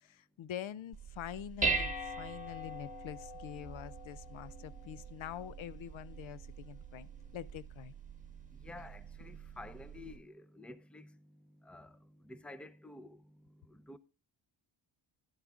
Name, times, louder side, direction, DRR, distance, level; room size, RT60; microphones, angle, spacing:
voice 1, 0.0-7.9, left 11 dB, 70° left, 0.6 m, -45 dB
Dishes pots and pans, 0.9-10.2, right 3 dB, 15° right, 1.3 m, -41 dB
voice 2, 8.5-11.2 11.6-13.2 13.7-14.0, left 2 dB, ahead, 0.6 m, -51 dB
11.5 x 10.5 x 2.4 m
cardioid pair, 100°, 49 cm